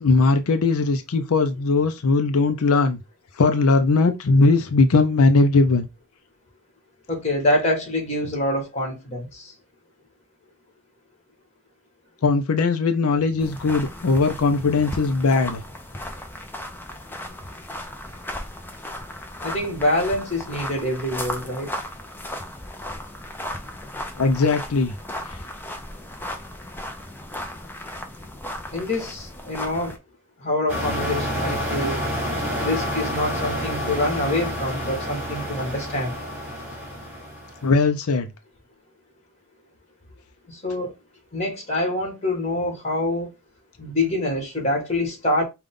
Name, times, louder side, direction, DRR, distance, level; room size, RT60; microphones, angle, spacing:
voice 1, 0.0-3.0 3.4-5.9 12.2-15.6 24.2-24.9 25.2-25.4 37.6-38.3, left 3 dB, 90° left, 0.5 m, -19 dB
voice 2, 7.1-9.5 19.4-21.7 28.7-30.0 30.4-32.0 32.6-36.2 40.5-40.9 41.3-43.3 43.8-45.4, left 1 dB, 30° left, 1.6 m, -25 dB
sound 1, 13.4-30.0, left 1 dB, 10° left, 0.5 m, -36 dB
sound 2, 30.7-37.7, equal, 10° right, 2.0 m, -28 dB
5.2 x 2.4 x 3.6 m
head